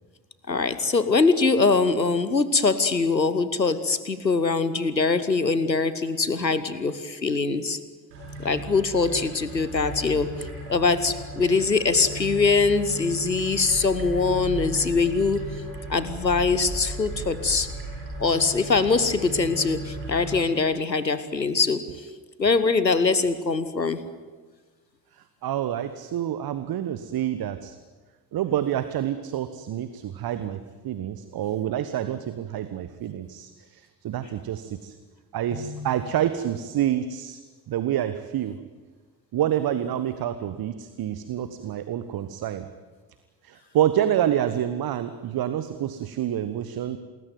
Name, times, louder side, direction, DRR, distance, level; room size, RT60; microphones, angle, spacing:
voice 1, 0.5-7.8 8.4-15.5 15.9-17.7 18.2-21.9 22.4-24.0 35.5-35.9, left 4 dB, 90° left, 14 dB, 1.0 m, -23 dB
sound 1, 8.1-20.4, right 1 dB, 75° right, 7.7 m, -36 dB
voice 2, 25.4-27.8 28.3-30.6 30.8-34.9 35.3-37.4 37.7-38.5 39.3-42.7 43.4-47.0, right 11 dB, 45° right, 11 dB, 1.4 m, -27 dB
27.5 x 20.5 x 9.4 m, 1.4 s
figure-of-eight pair, 45°, 49 cm